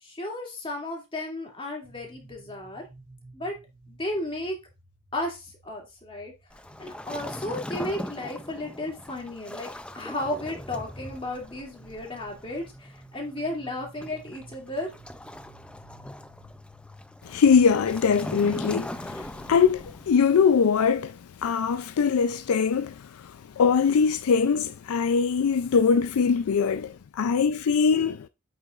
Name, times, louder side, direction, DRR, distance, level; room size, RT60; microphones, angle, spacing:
voice 1, 0.0-2.9 3.3-3.6 3.9-4.6 5.1-6.3 6.8-14.9, left 1 dB, 25° left, 2.4 m, -34 dB
sound 1, 1.8-20.1, equal, 50° right, 2.7 m, -53 dB
Waves surf, 6.5-20.2, left 1 dB, 5° left, 0.3 m, -40 dB
voice 2, 17.2-28.3, left 6 dB, 75° left, 0.4 m, -22 dB
8.4 x 6.7 x 2.4 m
head